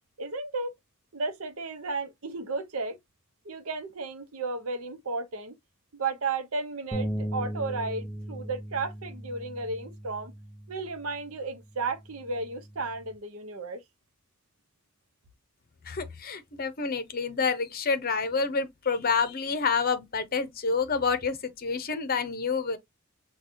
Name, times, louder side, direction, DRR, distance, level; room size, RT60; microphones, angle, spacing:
voice 1, 0.2-0.7 1.1-3.0 3.4-5.5 5.9-10.3 10.7-13.8, right 3 dB, 70° right, 0.8 m, -33 dB
sound 1, 6.9-13.2, equal, ahead, 0.4 m, -38 dB
voice 2, 15.8-22.8, left 5 dB, 45° left, 0.7 m, -28 dB
5.8 x 2.3 x 2.7 m
head